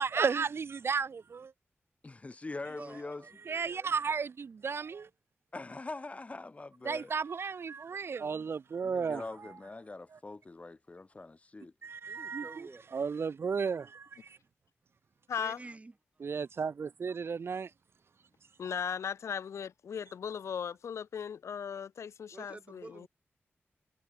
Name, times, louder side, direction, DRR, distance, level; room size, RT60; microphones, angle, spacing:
voice 1, 0.0-0.6 0.9-1.0 1.3-1.5 3.5-5.1 6.8-9.2 11.8-14.4 16.2-17.7, right 5 dB, 60° right, 0.5 m, -33 dB
voice 2, 2.0-3.3 5.5-7.1 8.8-11.7, left 3 dB, 30° left, 0.7 m, -43 dB
voice 3, 2.8-4.0 12.1-12.8 15.3-15.9 22.3-23.1, right 2 dB, 30° right, 1.3 m, -49 dB
voice 4, 15.3-15.6 18.6-23.1, left 7 dB, 85° left, 0.6 m, -37 dB
wide cardioid pair, 95°, 5 cm